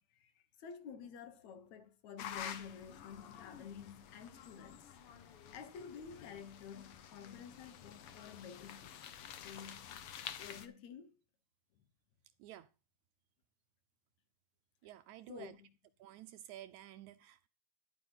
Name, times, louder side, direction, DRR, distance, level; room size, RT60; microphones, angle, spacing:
voice 1, 0.0-4.9 5.5-9.1 9.4-10.0 10.4-11.2 15.3-15.7, left 7 dB, 60° left, 2.4 m, -51 dB
sound 1, 2.2-10.7, left 9 dB, 85° left, 1.2 m, -50 dB
voice 2, 14.8-15.5 16.0-17.5, right 13 dB, 80° right, 1.7 m, -52 dB
12.0 x 9.0 x 4.0 m
omnidirectional pair, 4.0 m